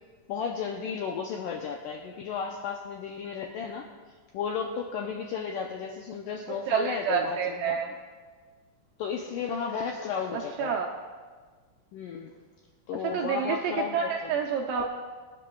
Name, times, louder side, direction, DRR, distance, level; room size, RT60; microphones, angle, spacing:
voice 1, 0.3-3.9 4.3-7.8 9.0-10.8 11.9-12.3 12.9-14.3, left 6 dB, 90° left, 2 dB, 1.9 m, -34 dB
voice 2, 6.7-7.9 10.3-10.9 13.0-14.9, right 7 dB, 75° right, 0 dB, 2.0 m, -28 dB
24.0 x 10.0 x 2.3 m, 1.5 s
omnidirectional pair, 4.6 m